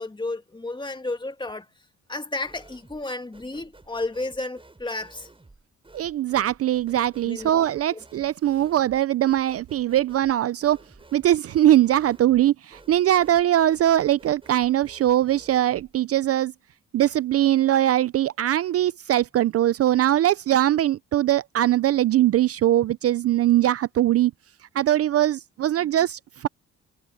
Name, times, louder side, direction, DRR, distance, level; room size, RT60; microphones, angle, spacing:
voice 1, 0.0-1.7 2.1-5.3 7.3-7.5 7.9-8.0, left 2 dB, 15° left, 2.3 m, -32 dB
sound 1, 2.4-3.1 3.3-15.9, right 2 dB, 15° right, 6.7 m, -52 dB
voice 2, 5.9-10.8 11.1-16.5 16.9-24.3 24.7-26.5, right 12 dB, 50° right, 0.5 m, -21 dB
cardioid pair, 90°, 30 cm